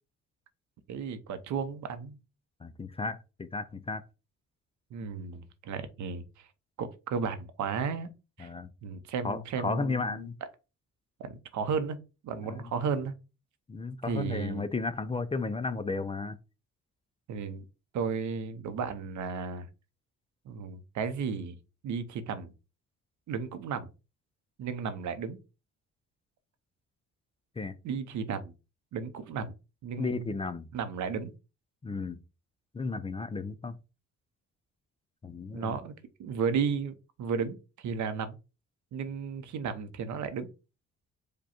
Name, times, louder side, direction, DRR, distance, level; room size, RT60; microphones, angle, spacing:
voice 1, 0.9-2.2 4.9-6.5 6.8-8.1 8.4-8.5 8.8-10.3 11.2-12.0 12.2-13.1 14.1-14.6 17.3-17.6 17.9-19.7 20.4-21.6 21.8-22.5 23.3-23.9 24.6-25.4 27.8-28.5 28.9-29.5 29.8-30.3 30.7-31.3 35.5-35.9 36.2-38.4 38.9-40.5, right 6 dB, 70° right, 0.8 m, -34 dB
voice 2, 2.6-4.0 8.4-8.7 9.2-10.4 12.4-12.7 13.7-16.4 27.6-27.8 30.0-30.6 31.8-32.2 32.7-33.7 35.2-35.8, left 3 dB, 20° left, 0.4 m, -34 dB
5.0 x 2.3 x 4.3 m
cardioid pair, 90°, 30 cm